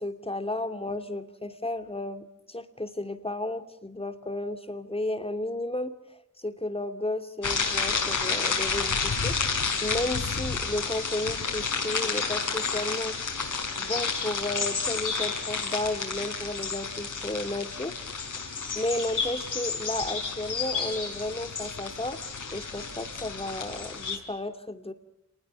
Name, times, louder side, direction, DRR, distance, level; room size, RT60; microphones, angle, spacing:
voice 1, 0.0-13.2 13.8-18.0 18.4-18.5 18.7-22.2 22.5-24.9, left 1 dB, 20° left, 7 dB, 2.6 m, -33 dB
sound 1, 7.4-24.2, left 5 dB, 80° left, 6.1 m, -30 dB
29.5 x 20.5 x 9.8 m, 0.82 s
wide cardioid pair, 85°, 31 cm